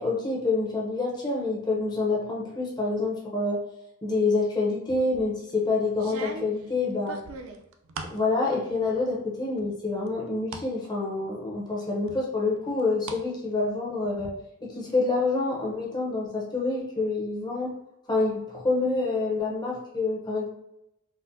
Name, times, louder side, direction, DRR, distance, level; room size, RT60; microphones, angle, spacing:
voice 1, 0.0-3.6 4.0-7.2 8.1-14.3 14.6-17.7 18.1-20.5, left 3 dB, 20° left, -3 dB, 0.8 m, -27 dB
sound 1, 4.9-5.3 6.0-8.2 8.7-9.2 9.6-10.7 11.1-11.2 12.1-13.2 13.5-14.3, right 4 dB, 65° right, 0.4 m, -40 dB
4.1 x 2.1 x 2.7 m, 0.82 s
head